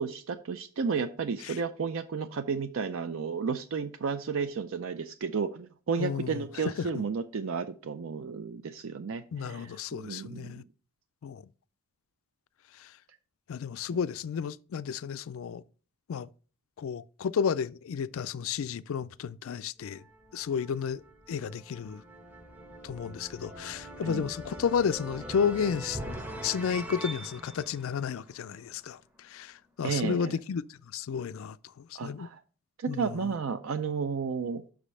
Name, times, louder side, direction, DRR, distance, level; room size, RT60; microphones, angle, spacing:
voice 1, 0.0-10.6 24.0-24.2 29.8-30.4 31.9-32.4 32.8-34.6, right 5 dB, 60° right, 0.4 m, -32 dB
voice 2, 6.0-7.0 9.3-10.6 11.2-11.4 12.7-12.9 13.5-15.6 16.1-16.3 16.8-20.0 20.3-21.0 21.3-22.0 22.8-26.0 26.4-32.3 32.9-33.4, left 7 dB, 65° left, 0.3 m, -32 dB
sound 1, 19.8-28.8, right 1 dB, 5° right, 0.7 m, -43 dB
6.1 x 5.1 x 5.4 m
head